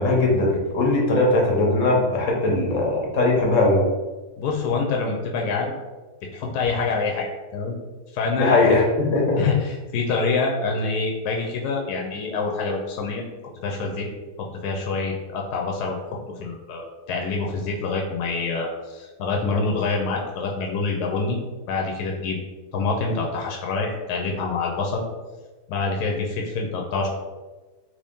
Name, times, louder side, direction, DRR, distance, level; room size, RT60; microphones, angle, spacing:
voice 1, 0.0-3.8 8.4-9.4, left 2 dB, 60° left, -1 dB, 1.1 m, -20 dB
voice 2, 4.4-5.7 6.3-7.3 7.5-7.8 8.1-8.6 9.4-13.2 13.6-14.1 14.4-21.4 21.7-22.4 22.7-25.0 25.7-27.1, left 4 dB, 85° left, 0 dB, 1.1 m, -26 dB
3.0 x 2.7 x 3.5 m, 1.2 s
omnidirectional pair, 1.6 m